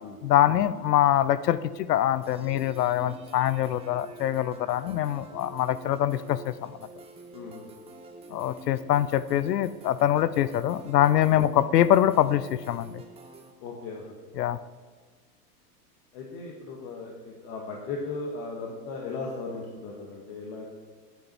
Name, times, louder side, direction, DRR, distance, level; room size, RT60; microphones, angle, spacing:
voice 1, 0.2-6.7 8.3-13.0 14.4-14.6, left 12 dB, 80° left, 16 dB, 0.6 m, -24 dB
sound 1, 2.2-13.5, right 3 dB, 10° right, 0.7 m, -48 dB
voice 2, 4.8-5.4 7.3-7.7 11.4-11.5 13.6-14.1 16.1-20.6, left 3 dB, 45° left, -1 dB, 1.6 m, -37 dB
9.1 x 8.7 x 4.4 m, 1.5 s
hypercardioid pair, 115°, 48 cm